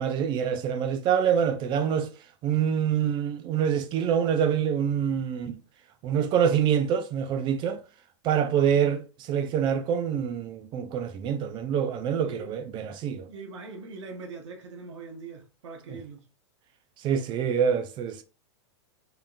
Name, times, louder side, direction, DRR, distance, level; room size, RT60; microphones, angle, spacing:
voice 1, 0.0-2.1 2.4-5.6 6.0-7.8 8.2-13.3 15.9-16.0 17.0-18.2, right 8 dB, 30° right, 0.5 m, -26 dB
voice 2, 12.2-12.6 13.3-16.2, right 4 dB, 80° right, 1.1 m, -41 dB
3.8 x 3.5 x 2.5 m
hypercardioid pair, 130°, 15 cm